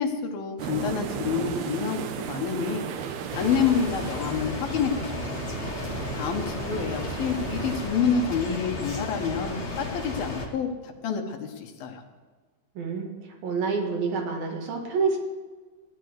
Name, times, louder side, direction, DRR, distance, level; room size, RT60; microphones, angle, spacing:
voice 1, 0.0-2.8 3.3-5.3 6.1-12.0, left 6 dB, 75° left, 4 dB, 2.9 m, -28 dB
sound 1, 0.6-7.9, right 8 dB, 90° right, 2.9 m, -35 dB
sound 2, 3.3-10.5, left 2 dB, 45° left, 0.8 m, -34 dB
voice 2, 12.8-15.2, right 4 dB, 70° right, 0 dB, 3.7 m, -28 dB
16.0 x 11.0 x 4.8 m, 1.4 s
omnidirectional pair, 4.4 m